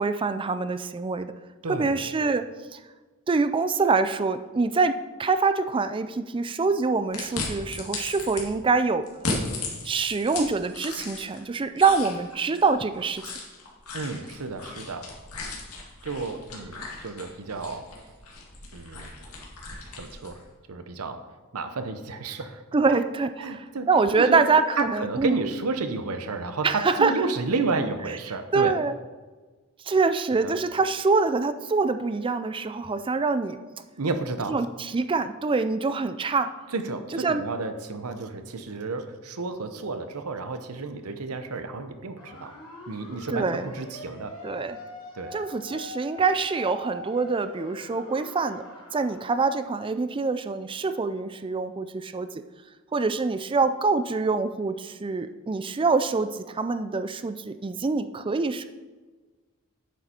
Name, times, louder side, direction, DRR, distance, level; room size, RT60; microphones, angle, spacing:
voice 1, 0.0-1.3 1.7-2.8 3.3-9.1 9.8-13.3 22.7-23.6 23.9-25.4 26.6-27.1 28.5-28.9 29.9-33.6 34.5-36.5 37.2-37.4 43.3-43.7 44.4-44.8 45.3-48.6 48.9-52.3 52.9-58.7, right 4 dB, 25° right, 11 dB, 0.4 m, -25 dB
voice 2, 1.6-1.9 13.9-15.1 16.0-17.9 18.7-19.1 19.9-20.4 20.7-21.2 21.5-22.6 22.9-23.0 23.4-23.9 24.2-24.4 24.8-28.8 30.3-30.6 34.0-34.6 36.7-42.5 42.9-44.3 45.1-45.4, right 3 dB, 85° right, 8 dB, 0.8 m, -31 dB
sound 1, 7.1-8.4 9.1-11.4 11.7-20.4, left 3 dB, 85° left, 2.1 m, -36 dB
sound 2, 42.2-49.4, left 2 dB, 70° left, 2.7 m, -43 dB
9.2 x 6.8 x 4.4 m, 1.3 s
head